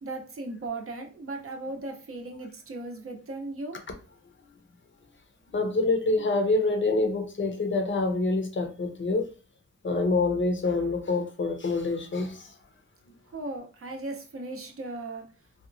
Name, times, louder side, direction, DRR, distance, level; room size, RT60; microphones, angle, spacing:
voice 1, 0.0-3.8 13.3-15.2, right 2 dB, 50° right, 2 dB, 0.6 m, -37 dB
voice 2, 5.5-9.3 9.8-12.5, left 3 dB, 40° left, 5 dB, 0.6 m, -26 dB
2.8 x 2.2 x 2.5 m, 0.35 s
wide cardioid pair, 110°, 30 cm